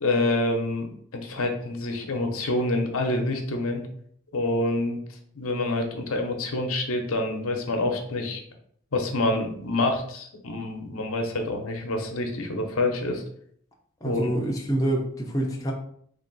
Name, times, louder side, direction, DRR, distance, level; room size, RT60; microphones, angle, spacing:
voice 1, 0.0-3.8 4.3-5.0 5.4-8.4 8.9-13.2 14.0-14.4, left 2 dB, 85° left, 3 dB, 0.7 m, -27 dB
voice 2, 14.0-15.7, right 1 dB, 15° left, -1 dB, 0.5 m, -26 dB
3.5 x 2.5 x 3.9 m, 0.65 s
head